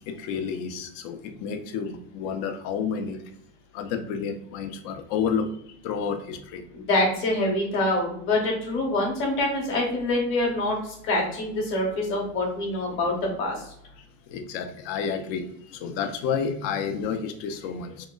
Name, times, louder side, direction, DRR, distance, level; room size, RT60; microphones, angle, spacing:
voice 1, 0.1-3.2 3.7-5.5 5.8-6.6 14.3-18.1, left 6 dB, 75° left, 7 dB, 0.5 m, -30 dB
voice 2, 6.7-10.8 11.1-13.5, left 1 dB, 40° left, -1 dB, 0.9 m, -25 dB
2.8 x 2.2 x 2.2 m, 0.70 s
cardioid pair, 170°, 31 cm